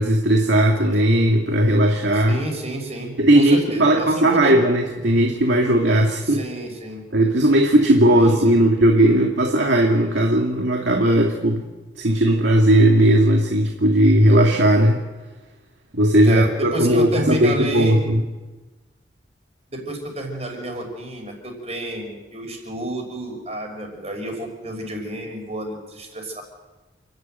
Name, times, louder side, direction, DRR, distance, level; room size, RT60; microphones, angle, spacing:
voice 1, 0.0-2.4 3.2-6.4 7.1-11.7 12.0-15.0 15.9-18.2, right 1 dB, 80° right, 1 dB, 2.2 m, -17 dB
voice 2, 2.1-4.5 6.2-7.0 8.2-8.6 16.2-18.0 19.7-26.4, right 1 dB, 35° right, 3 dB, 5.8 m, -30 dB
29.0 x 12.0 x 9.2 m, 1.2 s
head